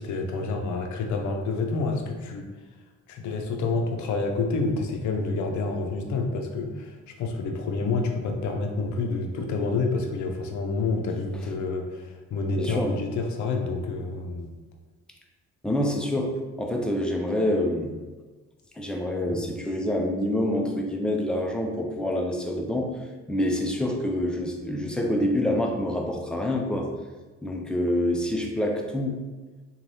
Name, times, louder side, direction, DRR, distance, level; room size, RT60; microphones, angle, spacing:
voice 1, 0.0-2.5 3.1-14.6, left 3 dB, 75° left, 3 dB, 0.5 m, -28 dB
voice 2, 12.5-12.9 15.6-18.0 18.8-22.9 23.3-26.9 27.4-29.2, left 1 dB, 5° left, 1 dB, 0.3 m, -26 dB
3.2 x 2.3 x 2.6 m, 1.3 s
cardioid pair, 90°, 30 cm